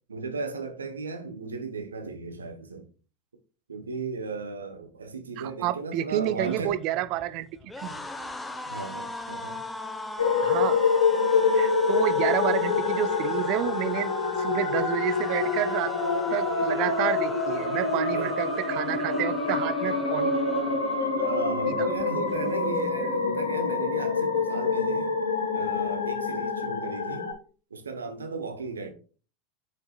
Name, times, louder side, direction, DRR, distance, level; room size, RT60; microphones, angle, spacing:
voice 1, 0.1-2.9 3.7-6.8 8.7-9.6 12.7-12.8 18.1-18.3 21.0-25.2 25.5-27.3 27.7-28.9, right 4 dB, 80° right, 1.2 m, -35 dB
voice 2, 5.4-7.5 7.8-8.0 10.4-10.8 11.5-15.9 16.3-20.3 21.7-21.9, right 13 dB, 50° right, 0.6 m, -29 dB
sound 1, 6.2-21.4 21.8-22.0 22.3-23.1, left 2 dB, 10° left, 1.1 m, -38 dB
sound 2, 10.2-27.3, left 4 dB, 85° left, 1.6 m, -26 dB
sound 3, 14.1-25.8, left 5 dB, 35° left, 1.4 m, -41 dB
8.1 x 6.5 x 2.4 m
figure-of-eight pair, 85°, 0 cm